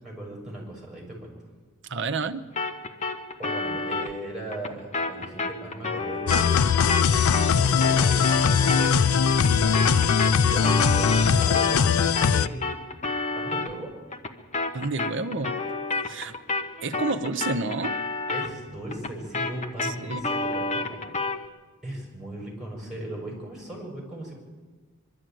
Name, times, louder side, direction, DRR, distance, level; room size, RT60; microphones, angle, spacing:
voice 1, 0.0-1.3 3.4-6.6 7.8-8.9 9.2-12.7 13.4-13.9 18.3-21.0 21.8-24.3, right 1 dB, 5° right, -1 dB, 6.8 m, -37 dB
voice 2, 1.9-2.4 14.7-15.6 16.0-16.3 16.8-18.0 19.8-20.2, right 3 dB, 60° right, 8 dB, 1.0 m, -29 dB
sound 1, 2.6-11.9 12.2-21.5, left 3 dB, 35° left, 1.2 m, -31 dB
sound 2, 6.3-12.5, left 6 dB, 85° left, 0.5 m, -20 dB
23.0 x 12.0 x 9.2 m, 1.4 s
head